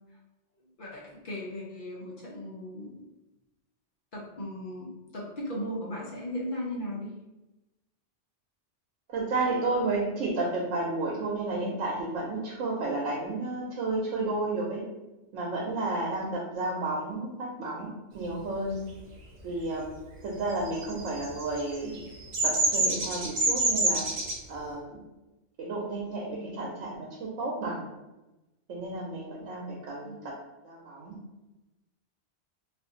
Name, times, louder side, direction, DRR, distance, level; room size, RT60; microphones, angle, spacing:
voice 1, 0.8-2.9 4.1-7.1 30.0-30.2, left 1 dB, 50° left, -4 dB, 0.8 m, -37 dB
voice 2, 9.1-14.8 15.3-17.9 18.1-18.8 19.4-19.9 20.2-22.0 22.4-24.1 24.5-25.0 25.6-27.9 28.7-30.3 30.6-31.2, right 2 dB, 80° right, -3 dB, 1.0 m, -32 dB
Bird vocalization bird call bird song, 20.7-24.4, right 2 dB, 50° right, 0.5 m, -26 dB
2.5 x 2.5 x 3.6 m, 1.0 s
omnidirectional pair, 1.3 m